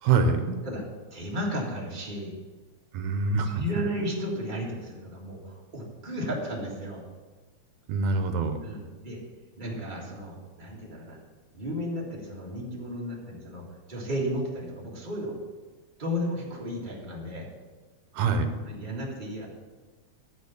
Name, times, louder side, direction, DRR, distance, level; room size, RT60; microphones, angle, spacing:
voice 1, 0.0-0.6 2.9-3.6 7.9-8.6 18.1-18.5, right 4 dB, 75° right, 7 dB, 2.2 m, -25 dB
voice 2, 1.1-2.3 3.4-7.0 8.6-9.2 9.6-11.2 11.5-15.4 16.0-17.5 18.6-19.5, equal, 20° right, -3 dB, 1.4 m, -34 dB
12.0 x 4.4 x 6.9 m, 1.3 s
omnidirectional pair, 3.5 m